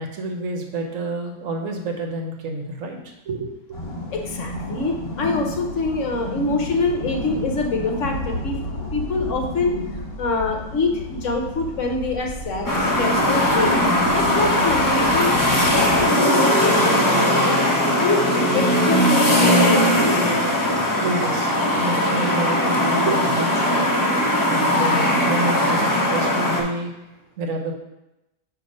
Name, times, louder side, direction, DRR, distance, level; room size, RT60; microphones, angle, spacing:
voice 1, 0.0-3.5 3.8-3.9 18.2-18.3 20.6-27.8, right 2 dB, 65° right, 2 dB, 1.1 m, -29 dB
sound 1, 3.7-16.1, left 1 dB, 45° left, 1.5 m, -32 dB
voice 2, 4.1-8.6 8.9-13.8 14.1-17.6 18.0-18.2 18.5-20.2, left 3 dB, 65° left, 2 dB, 1.0 m, -25 dB
sound 2, 12.7-26.6, left 1 dB, 15° left, 0.7 m, -19 dB
6.3 x 2.8 x 5.2 m, 0.92 s
omnidirectional pair, 1.5 m